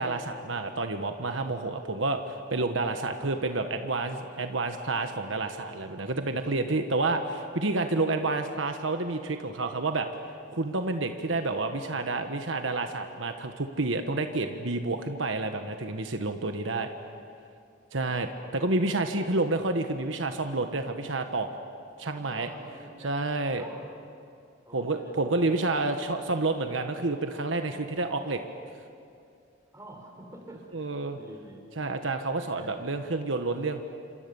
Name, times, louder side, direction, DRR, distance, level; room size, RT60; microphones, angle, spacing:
voice 1, 0.0-10.1 10.5-16.9 17.9-21.5 22.0-22.5 23.0-23.7 24.7-28.4 30.7-31.2 31.8-33.8, right 2 dB, 80° right, 6 dB, 1.4 m, -29 dB
voice 2, 22.1-23.1 23.6-23.8 24.6-25.2 28.1-28.4 29.7-31.6 32.3-32.7, right 1 dB, 15° right, 1 dB, 5.1 m, -48 dB
29.0 x 26.5 x 7.1 m, 2.4 s
head